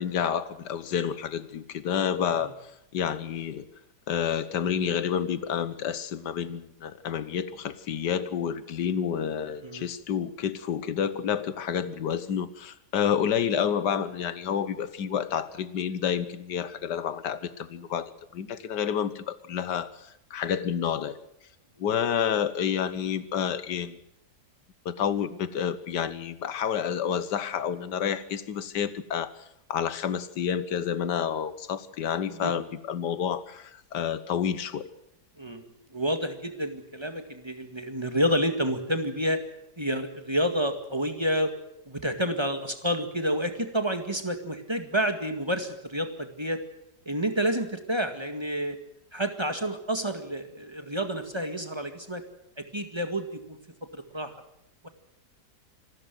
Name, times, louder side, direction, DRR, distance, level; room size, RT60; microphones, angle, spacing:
voice 1, 0.0-3.7 4.1-21.2 21.8-24.0 24.8-29.3 29.7-34.9, left 8 dB, 85° left, 14 dB, 1.7 m, -29 dB
voice 2, 35.9-39.4 39.8-41.5 41.9-46.6 47.1-48.8 49.1-52.2 52.6-53.6 53.9-54.3 54.8-54.9, equal, 15° right, 7 dB, 1.9 m, -29 dB
26.5 x 13.0 x 9.2 m, 0.80 s
omnidirectional pair, 1.8 m